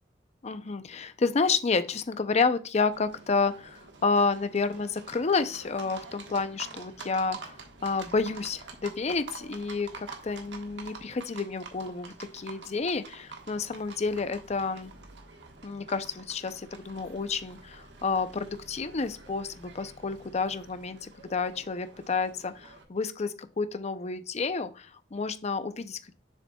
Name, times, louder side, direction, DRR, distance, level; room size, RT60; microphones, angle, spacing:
voice 1, 0.4-7.6 7.8-14.9 15.6-26.1, left 4 dB, 35° left, 11 dB, 0.5 m, -30 dB
Livestock farm animals working animals, 2.9-22.8, right 4 dB, 75° right, 1.4 m, -47 dB
7.2 x 6.9 x 2.3 m, 0.36 s
head